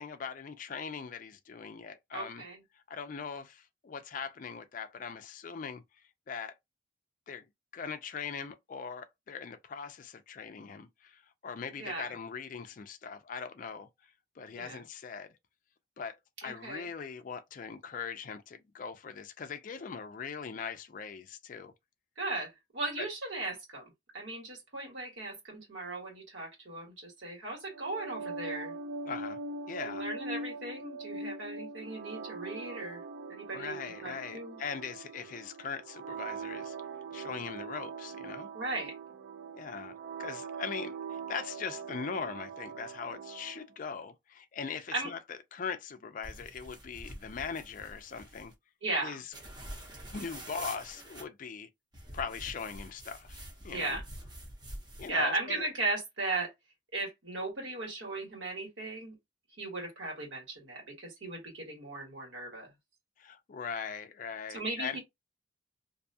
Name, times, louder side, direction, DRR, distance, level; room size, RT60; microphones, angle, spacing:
voice 1, 0.0-2.4 2.9-5.8 6.3-6.5 7.3-7.5 7.7-13.9 14.4-15.3 16.0-16.2 16.4-21.7 23.0-23.1 29.1-29.4 29.7-30.1 33.5-36.8 37.1-38.5 39.5-48.5 49.0-49.3 50.1-51.7 52.1-53.4 53.6-54.0 55.0-55.7 63.2-65.0, left 6 dB, 45° left, 0.4 m, -40 dB
voice 2, 2.1-2.6 11.8-12.1 14.5-14.8 16.4-16.9 22.2-23.8 24.1-28.7 29.8-33.0 33.3-34.6 38.5-38.9 44.9-45.1 48.8-49.2 53.7-54.0 55.1-56.5 56.9-59.1 59.6-62.7 64.5-65.0, right 2 dB, 75° right, 1.5 m, -37 dB
sound 1, 27.7-43.6, right 3 dB, 60° right, 0.4 m, -42 dB
sound 2, 46.2-48.5 49.3-51.2 51.9-55.2, right 1 dB, 20° right, 0.7 m, -46 dB
2.6 x 2.3 x 2.6 m
head